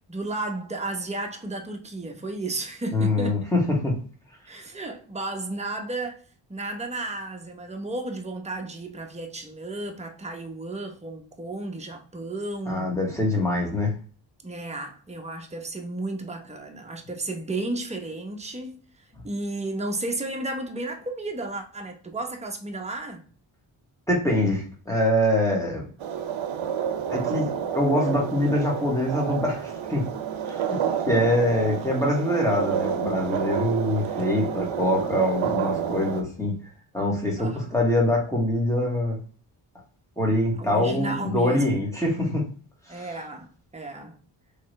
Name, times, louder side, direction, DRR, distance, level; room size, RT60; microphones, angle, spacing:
voice 1, 0.0-3.4 4.5-6.2 6.5-12.9 14.4-23.3 37.4-37.8 40.6-41.8 42.9-44.2, right 2 dB, 15° right, 0.8 m, -33 dB
voice 2, 2.9-3.9 12.7-13.9 24.1-25.8 27.1-30.0 30.5-30.8 31.1-36.5 36.9-39.2 40.2-42.5 42.9-43.1, left 1 dB, 5° left, 2.0 m, -24 dB
sound 1, 26.0-36.2, right 8 dB, 65° right, 0.7 m, -29 dB
3.6 x 3.2 x 3.2 m
cardioid pair, 55°, 50 cm